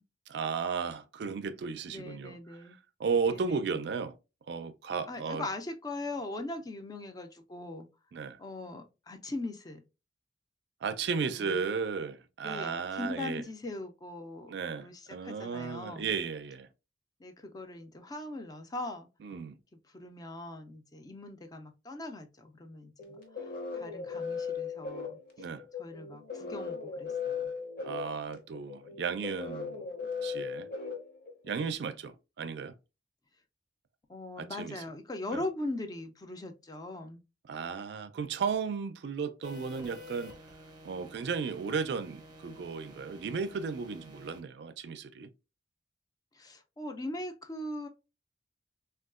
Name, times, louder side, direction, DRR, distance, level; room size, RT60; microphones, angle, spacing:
voice 1, 0.3-2.4 3.0-4.1 4.5-5.5 8.1-8.4 10.8-13.4 14.5-16.7 19.2-19.6 25.4-25.6 27.8-29.9 30.2-30.7 31.4-32.7 34.4-34.8 35.3-35.4 37.5-40.3 40.8-45.3, right 5 dB, 70° right, 0.4 m, -34 dB
voice 2, 1.9-2.8 3.3-3.9 5.1-7.9 8.4-9.8 11.2-11.6 12.4-14.5 14.8-16.1 17.2-19.1 19.9-23.5 23.7-25.2 25.8-27.5 34.1-37.2 46.3-47.9, left 2 dB, 20° left, 0.4 m, -40 dB
sound 1, 23.0-31.7, left 5 dB, 55° left, 0.8 m, -38 dB
sound 2, 39.4-44.4, left 1 dB, 25° right, 0.6 m, -50 dB
3.5 x 2.3 x 2.3 m
head